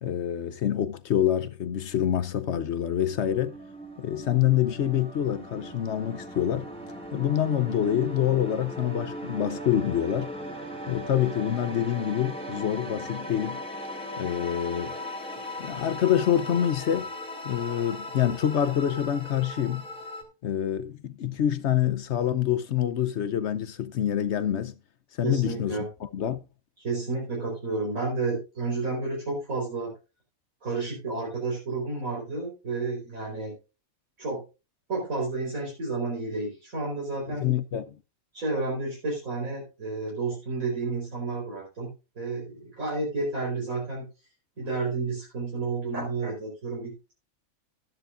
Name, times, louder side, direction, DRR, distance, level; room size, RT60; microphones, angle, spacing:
voice 1, 0.0-3.6 4.0-6.7 7.1-10.3 10.9-13.6 14.2-14.9 15.6-17.1 17.4-19.8 20.4-24.7 25.2-25.9 26.1-26.4 37.3-37.9, left 10 dB, 60° left, 0.9 m, -26 dB
sound 1, 1.9-20.2, equal, 5° left, 2.3 m, -38 dB
voice 2, 25.2-25.9 26.8-29.9 30.6-33.6 34.2-34.4 34.9-37.5 38.3-41.9 42.1-44.0 44.6-47.1, right 3 dB, 75° right, 4.9 m, -31 dB
13.0 x 10.5 x 2.5 m
omnidirectional pair, 1.4 m